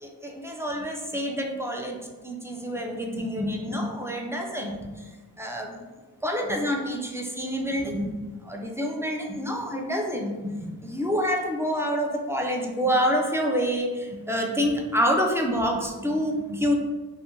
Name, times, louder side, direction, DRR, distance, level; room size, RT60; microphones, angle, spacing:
voice 1, 0.0-2.0 2.2-5.1 5.4-5.8 6.2-8.1 8.4-16.7, equal, 5° right, 0 dB, 0.4 m, -27 dB
2.7 x 2.4 x 2.8 m, 1.2 s
cardioid pair, 70°, 37 cm